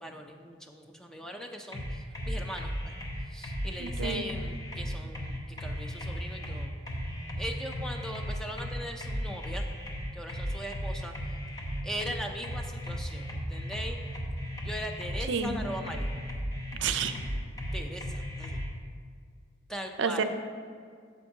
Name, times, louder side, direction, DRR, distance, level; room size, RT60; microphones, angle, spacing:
voice 1, 0.0-2.9 3.3-6.7 7.4-9.7 10.1-11.2 11.8-14.0 14.6-16.2 17.7-18.6 19.7-20.2, equal, 5° left, 3 dB, 0.4 m, -40 dB
sound 1, 1.7-18.7, equal, 20° left, 0.8 m, -35 dB
voice 2, 3.8-4.3 15.2-15.6 16.8-17.1 20.0-20.2, right 5 dB, 75° right, 9 dB, 0.5 m, -30 dB
8.9 x 6.9 x 2.7 m, 2.1 s
head